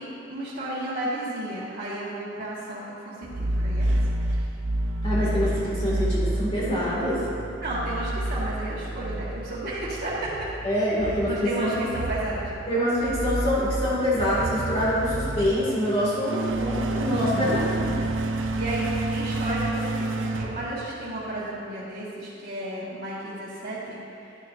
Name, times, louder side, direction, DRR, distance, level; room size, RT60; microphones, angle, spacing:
voice 1, 0.0-4.0 4.3-4.5 7.6-10.5 10.9-12.5 17.1-17.9 18.5-18.8 19.1-24.4, right 1 dB, 55° right, -11 dB, 1.5 m, -33 dB
sound 1, 3.2-21.4, right 1 dB, 70° right, 0.6 m, -29 dB
voice 2, 5.0-7.2 10.6-12.0 12.7-17.9, equal, 30° left, -8 dB, 2.2 m, -25 dB
11.0 x 9.8 x 2.6 m, 2.7 s
head